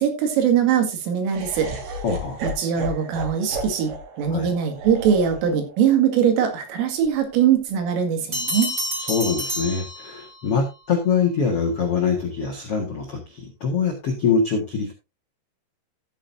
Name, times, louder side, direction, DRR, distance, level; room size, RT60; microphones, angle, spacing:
voice 1, 0.0-1.7 2.4-8.7, right 8 dB, 85° right, 5 dB, 4.6 m, -21 dB
Laughter, 1.3-7.4, right 1 dB, 50° right, 3.0 m, -35 dB
voice 2, 2.0-2.4 4.3-4.5 9.1-14.9, left 5 dB, 85° left, 1 dB, 1.3 m, -24 dB
sound 1, 8.3-10.6, equal, 20° right, 2.9 m, -29 dB
14.0 x 8.9 x 2.7 m, 0.26 s
omnidirectional pair, 5.8 m